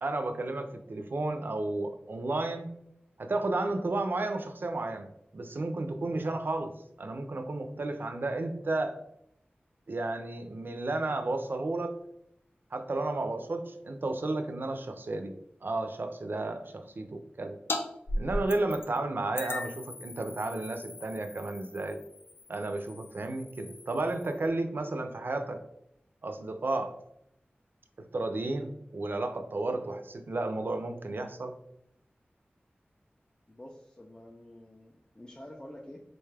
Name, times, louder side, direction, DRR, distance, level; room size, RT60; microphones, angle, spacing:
voice 1, 0.0-2.7 3.2-6.7 7.0-9.0 9.9-12.0 12.7-15.3 15.6-16.6 17.0-17.6 18.1-22.0 22.5-25.6 26.2-26.9 28.0-31.5, right 2 dB, 60° right, 7 dB, 0.4 m, -32 dB
voice 2, 7.7-8.1 16.3-16.5 33.5-36.0, left 1 dB, 20° left, 0 dB, 0.4 m, -50 dB
sound 1, 17.7-17.8 18.1-19.0 19.4-24.5, left 1 dB, 85° left, 0.4 m, -38 dB
4.0 x 2.3 x 3.2 m, 0.77 s
wide cardioid pair, 75°, 4 cm